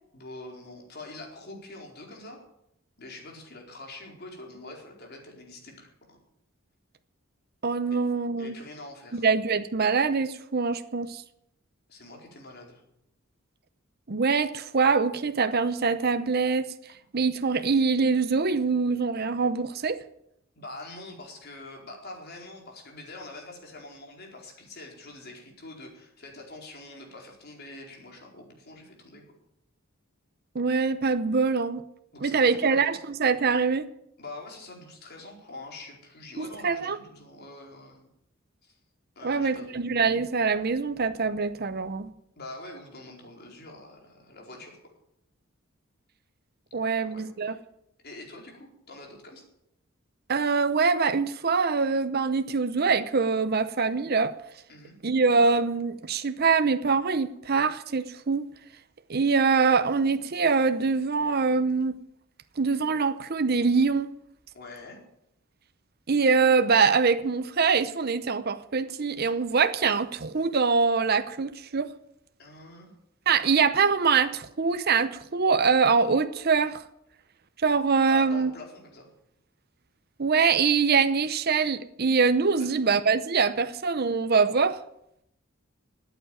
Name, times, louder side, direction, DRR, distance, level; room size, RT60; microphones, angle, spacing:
voice 1, 0.1-2.4 3.0-6.2 7.9-8.0 8.4-9.3 11.9-12.8 20.5-29.2 32.1-33.0 34.2-38.1 38.6-38.8 39.2-40.0 42.4-44.8 46.9-47.6 48.0-49.4 54.7-55.0 64.5-65.0 72.4-72.9 78.1-79.1 82.6-82.7 83.6-83.8, left 2 dB, 50° left, 4.5 m, -45 dB
voice 2, 7.6-8.6 9.1-11.2 14.1-16.7 17.1-20.0 30.5-31.8 32.2-33.9 36.4-37.0 39.2-42.1 46.7-47.6 50.3-54.3 55.0-58.5 59.1-62.0 62.6-64.1 66.1-71.9 73.3-76.8 77.6-78.5 80.2-84.8, right 5 dB, 50° right, 0.7 m, -24 dB
14.0 x 8.9 x 9.2 m
head